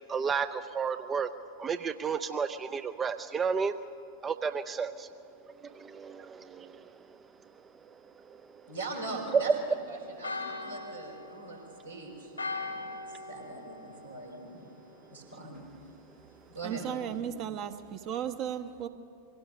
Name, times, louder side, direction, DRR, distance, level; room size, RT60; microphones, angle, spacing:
voice 1, 0.1-1.3 1.6-3.7 4.2-5.1 5.4-7.2 7.6-8.6 9.3-9.6, right 5 dB, 20° right, 10 dB, 0.6 m, -32 dB
voice 2, 8.7-9.5 9.9-11.6 11.8-14.6 15.1-15.6 16.5-16.9 17.2-17.3, right 2 dB, 80° right, -2 dB, 4.5 m, -41 dB
Church bell, 9.2-15.0, left 3 dB, 85° left, 1.7 m, -41 dB
voice 3, 16.6-18.9, right 9 dB, 40° right, 8 dB, 1.1 m, -35 dB
23.5 x 17.0 x 6.8 m, 2.4 s
figure-of-eight pair, 90°, 0 cm